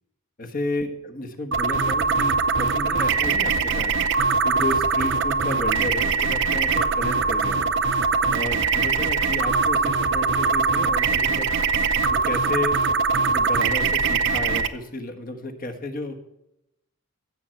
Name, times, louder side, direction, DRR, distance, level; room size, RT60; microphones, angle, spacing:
voice 1, 0.4-3.9 4.4-7.7 8.3-11.5 12.1-12.8 13.3-16.2, left 2 dB, 40° left, 4 dB, 1.4 m, -32 dB
sound 1, 1.5-14.7, right 4 dB, 55° right, 0.7 m, -22 dB
15.5 x 7.7 x 4.4 m, 0.85 s
head